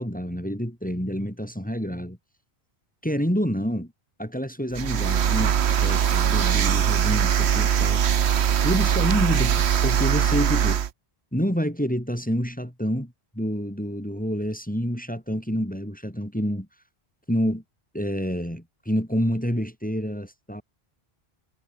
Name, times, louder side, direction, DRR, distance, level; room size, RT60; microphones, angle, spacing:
voice 1, 0.0-2.2 3.0-3.9 4.2-8.1 8.6-10.8 11.3-16.7 17.3-17.6 17.9-20.6, equal, 10° left, 4.2 m, -28 dB
sound 1, 4.7-10.9, right 8 dB, 85° right, 1.2 m, -21 dB
omnidirectional pair, 1.1 m